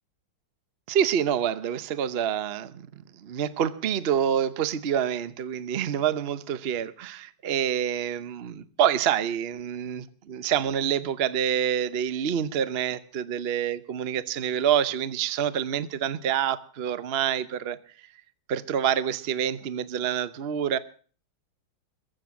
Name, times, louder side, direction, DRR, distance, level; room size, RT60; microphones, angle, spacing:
voice 1, 0.9-18.1 18.5-20.8, right 9 dB, 85° right, 0.5 m, -27 dB
22.0 x 7.7 x 7.4 m
omnidirectional pair, 2.3 m